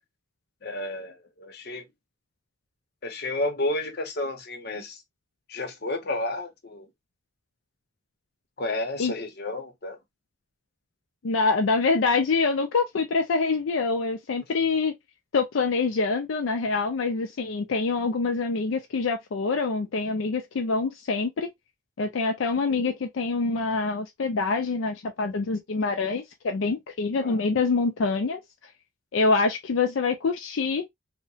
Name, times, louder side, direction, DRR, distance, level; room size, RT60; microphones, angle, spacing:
voice 1, 0.6-1.8 3.0-5.0 5.5-6.9 8.6-10.0 27.2-27.4, left 2 dB, 55° left, 0.8 m, -31 dB
voice 2, 11.2-14.9 15.3-21.5 22.0-28.4 29.1-30.8, left 4 dB, 80° left, 0.4 m, -25 dB
2.8 x 2.1 x 2.7 m
head